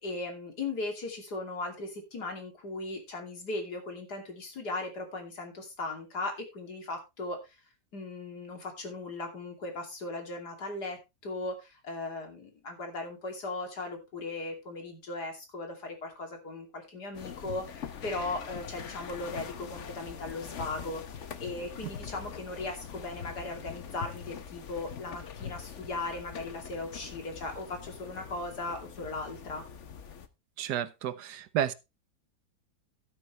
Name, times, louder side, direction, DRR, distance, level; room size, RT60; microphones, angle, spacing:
voice 1, 0.0-7.6 7.9-29.6, left 2 dB, 70° left, 3.4 m, -38 dB
sound 1, 17.1-30.3, left 7 dB, 50° left, 1.1 m, -43 dB
voice 2, 30.6-31.7, right 10 dB, 80° right, 1.4 m, -31 dB
12.0 x 9.4 x 3.2 m
omnidirectional pair, 1.8 m